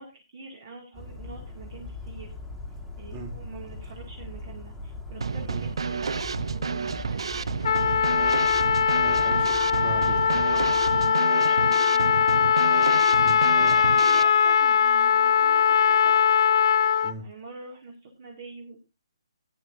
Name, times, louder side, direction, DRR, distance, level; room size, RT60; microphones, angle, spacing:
voice 1, 0.0-2.3 3.0-8.5 9.8-12.6 14.0-16.2 17.2-18.8, right 3 dB, 45° right, 1 dB, 2.1 m, -45 dB
Bird vocalization bird call bird song, 0.9-11.1, left 2 dB, ahead, 1.7 m, -40 dB
Drum kit / Snare drum, 5.2-14.2, right 5 dB, 70° right, 0.5 m, -30 dB
Trumpet, 7.6-17.1, left 7 dB, 60° left, 0.7 m, -21 dB
voice 2, 9.0-10.4 13.2-13.8 17.0-17.2, right 3 dB, 25° right, 4 dB, 3.1 m, -40 dB
16.0 x 9.3 x 2.6 m, 0.25 s
hypercardioid pair, 150°, 3 cm